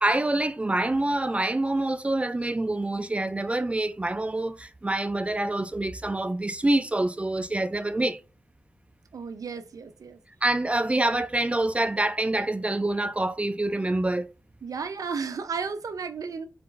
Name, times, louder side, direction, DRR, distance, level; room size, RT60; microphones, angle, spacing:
voice 1, 0.0-8.2 10.4-14.3, right 2 dB, 20° right, 0.3 m, -26 dB
voice 2, 9.1-10.2 14.6-16.5, right 5 dB, 85° right, 0.6 m, -33 dB
4.3 x 2.5 x 3.8 m
wide cardioid pair, 90°, 6 cm